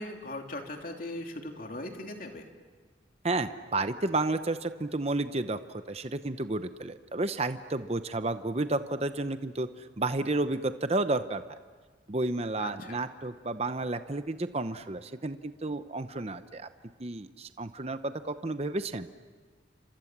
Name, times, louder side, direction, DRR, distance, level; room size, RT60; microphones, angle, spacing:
voice 1, 0.0-2.5 12.6-13.0, left 2 dB, 50° left, 3 dB, 2.9 m, -39 dB
voice 2, 3.2-11.4 12.1-16.7 17.0-19.1, right 2 dB, 35° right, 10 dB, 0.8 m, -31 dB
29.5 x 26.0 x 7.4 m, 1.4 s
head